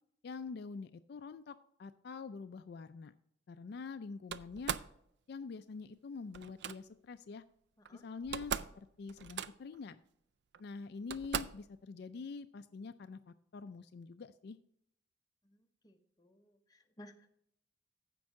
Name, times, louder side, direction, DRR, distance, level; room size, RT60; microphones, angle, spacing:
voice 1, 0.2-3.1 3.5-4.8 5.3-7.4 7.9-10.0 10.6-14.6, left 4 dB, 60° left, 10 dB, 0.4 m, -46 dB
Slam, 4.3-5.0 6.3-6.8 7.8-7.9 8.2-8.8 9.1-9.8 10.5-10.6 11.1-11.7, right 7 dB, 60° right, 0.4 m, -39 dB
voice 2, 15.8-17.3, equal, 20° left, 4 dB, 0.8 m, -57 dB
14.5 x 5.4 x 3.6 m, 0.72 s
head